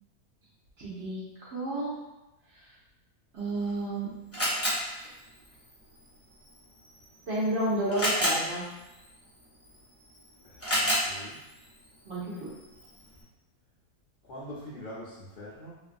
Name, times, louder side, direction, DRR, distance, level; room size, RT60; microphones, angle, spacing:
voice 1, 0.8-1.9 3.3-4.1 4.4-4.8 7.3-8.7 12.1-12.5, right 1 dB, 55° right, -7 dB, 0.8 m, -31 dB
Camera, 3.4-13.2, equal, 10° left, 0.7 m, -34 dB
voice 2, 10.4-11.4 14.2-15.8, equal, 70° left, -8 dB, 0.5 m, -44 dB
2.5 x 2.4 x 2.5 m, 1.0 s
omnidirectional pair, 1.5 m